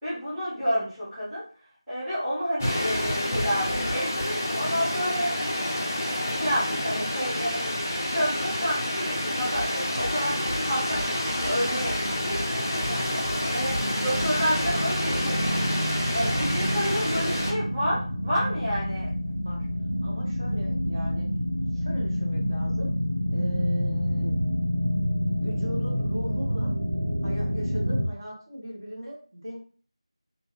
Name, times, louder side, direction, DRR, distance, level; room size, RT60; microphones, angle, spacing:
voice 1, 0.0-1.4 1.9-5.4 6.3-7.8 8.1-12.0 12.3-15.6 16.1-19.1, equal, 5° right, -14 dB, 0.7 m, -30 dB
sound 1, 2.6-17.5, left 1 dB, 20° left, 0.4 m, -29 dB
sound 2, 9.5-15.5, left 1 dB, 90° left, 0.4 m, -37 dB
sound 3, 10.4-28.0, equal, 80° right, 0.9 m, -29 dB
voice 2, 20.0-21.3 21.7-23.0 23.3-24.4 25.4-26.7 27.2-29.6, equal, 40° right, -2 dB, 0.7 m, -38 dB
2.8 x 2.3 x 2.9 m, 0.41 s
figure-of-eight pair, 170°, 3 cm